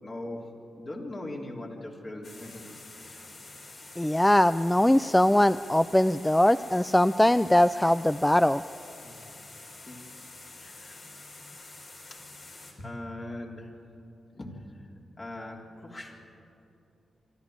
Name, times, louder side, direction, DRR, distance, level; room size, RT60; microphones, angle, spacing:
voice 1, 0.0-0.5 0.8-2.6 3.0-3.2 9.0-9.2 9.9-10.0 10.6-11.0 12.8-13.8 14.3-14.7 15.2-16.2, left 1 dB, 40° left, -1 dB, 3.6 m, -40 dB
sound 1, 2.2-12.7, left 2 dB, 60° left, 4.3 m, -47 dB
voice 2, 4.0-8.6, left 1 dB, 10° left, 13 dB, 0.4 m, -21 dB
24.5 x 12.5 x 8.8 m, 2.9 s
supercardioid pair, 40°, 0 cm